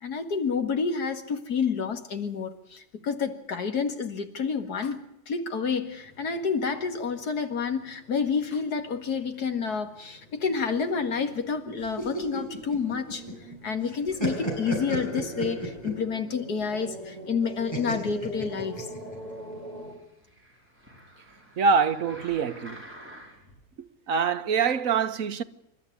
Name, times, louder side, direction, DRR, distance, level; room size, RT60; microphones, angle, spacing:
voice 1, 0.0-13.2 13.6-18.9, left 5 dB, 90° left, 2.4 m, -29 dB
sound 1, 5.8-19.9, equal, 25° right, 4.1 m, -44 dB
sound 2, 11.8-13.5 13.8-16.1 17.7-19.2, right 1 dB, 15° left, 6.6 m, -33 dB
sound 3, 19.0-23.6 24.2-24.3, equal, 5° right, 5.7 m, -49 dB
voice 2, 21.6-22.8 24.1-25.4, right 5 dB, 60° right, 1.4 m, -24 dB
28.5 x 13.0 x 9.7 m
omnidirectional pair, 1.6 m